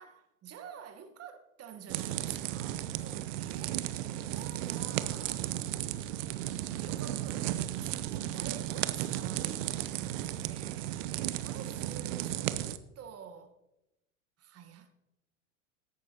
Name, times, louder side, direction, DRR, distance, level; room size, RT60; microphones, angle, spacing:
voice 1, 0.0-3.8 4.3-5.5 6.5-11.0 11.4-12.6 12.9-13.6 14.4-14.9, right 7 dB, 35° right, 1.4 m, -49 dB
sound 1, 1.9-12.8, right 13 dB, 70° right, 0.7 m, -35 dB
14.0 x 10.5 x 2.9 m
hypercardioid pair, 85°, 40 cm